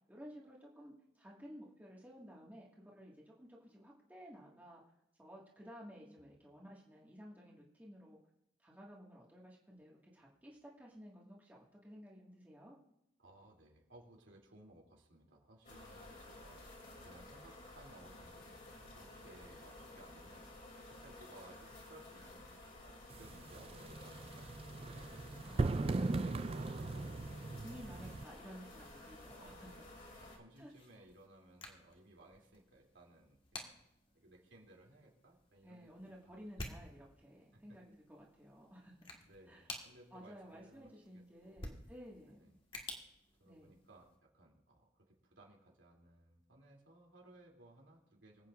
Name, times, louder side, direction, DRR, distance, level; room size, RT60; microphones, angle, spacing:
voice 1, 0.1-4.8 5.2-8.2 8.6-12.8 25.4-26.4 27.6-29.7 30.6-30.7 35.6-38.9 39.5-39.7 40.1-42.6 43.4-43.7, equal, 10° right, -4 dB, 1.8 m, -55 dB
voice 2, 13.2-18.5 18.9-20.5 20.9-22.5 22.8-28.2 29.4-33.8 34.1-36.7 37.5-37.8 39.2-41.6 42.3-42.5 43.4-48.5, right 1 dB, 80° right, -1 dB, 2.9 m, -61 dB
sound 1, 15.6-30.4, left 2 dB, 45° left, 2.9 m, -54 dB
sound 2, 23.1-28.2, right 3 dB, 30° right, 0.3 m, -38 dB
sound 3, 30.5-44.2, left 2 dB, 25° left, 1.5 m, -53 dB
25.5 x 8.6 x 2.5 m, 0.79 s
head